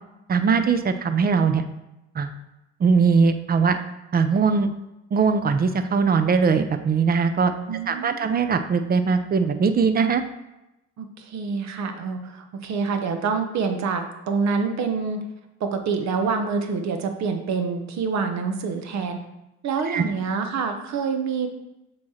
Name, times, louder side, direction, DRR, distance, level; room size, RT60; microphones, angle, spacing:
voice 1, 0.3-1.6 2.2-2.3 2.8-3.8 4.1-4.7 5.1-7.5 7.9-10.2 19.9-20.0, right 5 dB, 30° right, 9 dB, 0.5 m, -20 dB
voice 2, 7.7-8.4 11.0-15.2 15.6-19.2 19.6-21.5, right 5 dB, 60° right, 6 dB, 0.9 m, -26 dB
7.1 x 3.2 x 4.2 m, 0.93 s
cardioid pair, 95°, 31 cm